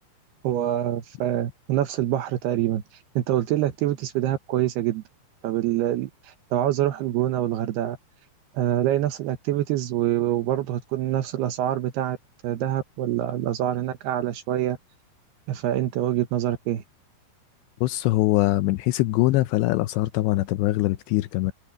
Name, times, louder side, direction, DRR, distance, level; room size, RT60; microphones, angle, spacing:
voice 1, 0.4-2.8 3.2-5.0 5.4-8.0 8.5-12.2 12.4-14.8 15.5-16.8, right 12 dB, 70° right, 2.7 m, -25 dB
voice 2, 17.8-21.5, left 18 dB, 80° left, 2.6 m, -22 dB
omnidirectional pair, 5.5 m